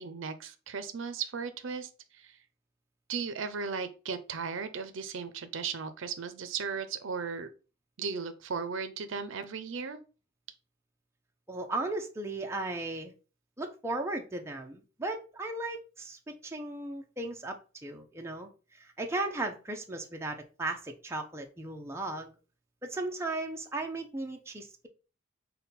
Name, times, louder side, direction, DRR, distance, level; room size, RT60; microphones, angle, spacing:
voice 1, 0.0-2.4 3.1-7.5 8.0-10.0, right 5 dB, 70° right, 11 dB, 0.5 m, -36 dB
voice 2, 11.5-13.1 13.6-17.6 17.8-22.3 22.8-24.9, right 2 dB, 15° right, 3 dB, 0.5 m, -36 dB
5.5 x 2.2 x 4.1 m, 0.34 s
head